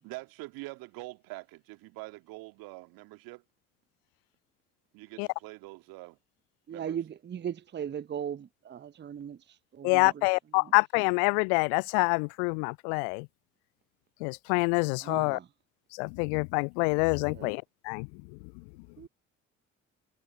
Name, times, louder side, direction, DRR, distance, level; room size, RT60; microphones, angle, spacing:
voice 1, 0.0-3.4 4.9-6.2 6.7-7.0 10.0-10.1, right 23 dB, 60° right, 2.0 m, -44 dB
voice 2, 6.7-9.4 9.7-10.2 15.0-15.5 17.3-17.5 19.0-19.1, right 9 dB, 25° right, 0.9 m, -37 dB
voice 3, 9.8-13.3 14.2-15.4 15.9-18.1, left 40 dB or more, 60° left, 0.5 m, -26 dB
figure-of-eight pair, 50°, 39 cm